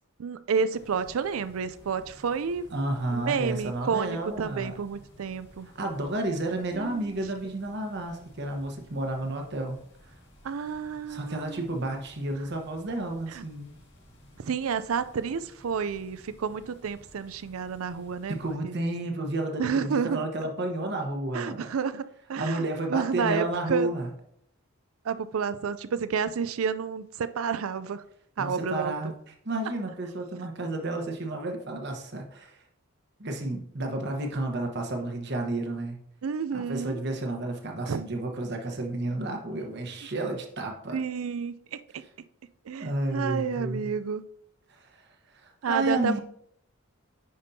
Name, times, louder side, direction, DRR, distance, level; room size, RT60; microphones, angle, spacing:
voice 1, 0.2-2.7 3.1-5.7 6.7-7.0 10.4-11.6 14.4-18.4 18.6-18.8 19.6-20.2 21.3-22.0 22.3-22.6 22.9-23.4 23.7-23.9 25.1-28.0 28.4-28.9 36.2-37.0 37.9-38.0 40.9-42.0 42.7-44.2 45.6-46.2, right 6 dB, 90° right, 13 dB, 0.4 m, -30 dB
sound 1, 0.7-18.5, equal, 60° left, 2.0 m, -55 dB
voice 2, 2.7-4.7 5.7-9.8 11.1-13.8 18.3-21.8 22.4-24.1 28.4-32.6 33.2-36.0 36.5-41.0 42.8-43.9 44.7-45.0 45.4-46.2, right 2 dB, 55° right, 3 dB, 1.2 m, -31 dB
9.6 x 5.2 x 2.7 m, 0.69 s
head